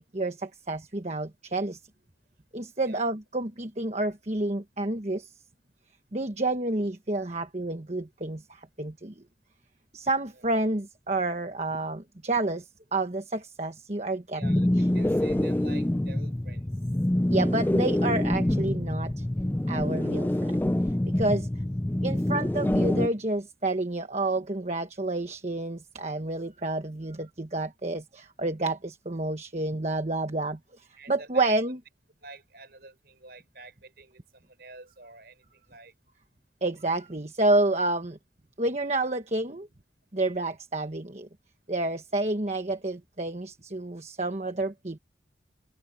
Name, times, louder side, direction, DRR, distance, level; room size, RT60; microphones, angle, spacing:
voice 1, 0.0-1.8 2.5-5.3 6.1-9.2 9.9-14.4 14.7-14.9 17.3-19.2 19.7-20.6 21.1-21.5 22.0-31.8 36.6-38.2 38.6-39.7 40.1-41.3 41.7-45.0, right 2 dB, 35° right, 1.2 m, -29 dB
voice 2, 14.3-16.7 31.0-31.5 32.2-35.9, right 2 dB, 55° right, 5.9 m, -48 dB
sound 1, 14.4-23.1, left 1 dB, 10° left, 0.4 m, -26 dB
head